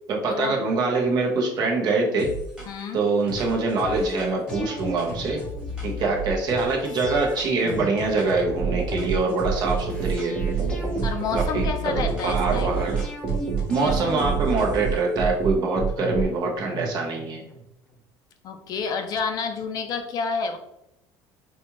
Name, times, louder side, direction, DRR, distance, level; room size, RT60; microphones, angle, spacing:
voice 1, 0.1-2.3 2.9-5.4 5.8-10.4 11.3-13.0 13.7-17.4, right 3 dB, 50° right, 0 dB, 1.0 m, -24 dB
sound 1, 2.2-2.9 3.3-8.5 8.9-10.3 10.6-15.0, equal, 10° right, 1.4 m, -35 dB
voice 2, 2.7-3.0 11.0-12.7 13.8-14.2 18.4-20.6, left 5 dB, 45° left, 6 dB, 0.4 m, -29 dB
sound 2, 4.5-6.1 6.8-9.0 9.9-12.1 13.0-15.3 16.0-17.6 17.9-18.0, right 1 dB, 10° left, 0.8 m, -38 dB
sound 3, 8.6-16.2, right 6 dB, 30° right, 0.8 m, -26 dB
4.2 x 2.4 x 3.0 m, 0.81 s
cardioid pair, 135°, 9 cm